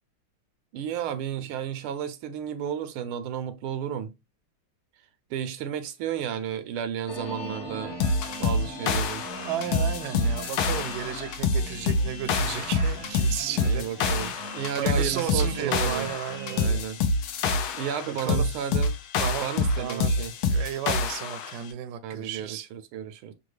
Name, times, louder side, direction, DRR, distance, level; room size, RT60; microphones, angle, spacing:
voice 1, 0.7-4.1 5.3-8.0 8.4-9.3 13.6-16.1 16.5-17.0 17.7-18.9 19.4-20.3 22.0-23.3, right 9 dB, 85° right, 1.5 m, -33 dB
sound 1, 7.1-16.2 16.5-16.6 16.8-17.4, left 1 dB, 45° left, 1.0 m, -44 dB
sound 2, 7.2-16.7, right 1 dB, 25° right, 0.7 m, -42 dB
sound 3, 8.0-21.6, left 3 dB, 85° left, 1.5 m, -26 dB
voice 2, 9.1-16.8 18.1-18.5 19.2-19.5 19.8-22.6, right 10 dB, 70° right, 1.1 m, -34 dB
6.7 x 2.3 x 3.1 m
omnidirectional pair, 2.3 m